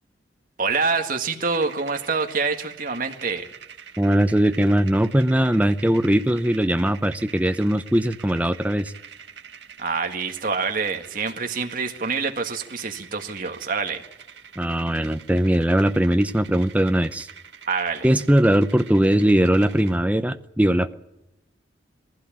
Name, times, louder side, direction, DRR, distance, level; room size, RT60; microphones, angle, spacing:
voice 1, 0.6-3.5 9.8-14.0 17.7-18.1, right 4 dB, 45° right, 5 dB, 1.9 m, -26 dB
sound 1, 1.4-20.0, right 7 dB, 70° right, 1.7 m, -45 dB
voice 2, 4.0-8.9 14.6-17.3 18.0-20.9, right 1 dB, 10° right, 9 dB, 0.7 m, -20 dB
21.0 x 15.5 x 8.8 m, 0.91 s
head